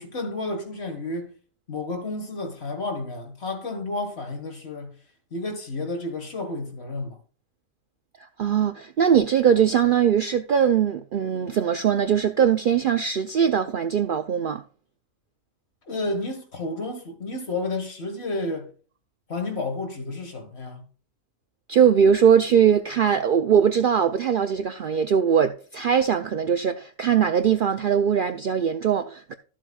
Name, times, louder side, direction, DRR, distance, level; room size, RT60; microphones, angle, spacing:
voice 1, 0.0-1.3 1.7-5.0 5.3-7.2 15.9-18.7 19.3-20.8, left 2 dB, 45° left, 1.8 m, -31 dB
voice 2, 8.4-14.6 21.7-29.3, right 8 dB, 85° right, 0.4 m, -21 dB
12.5 x 7.4 x 2.3 m
omnidirectional pair, 1.5 m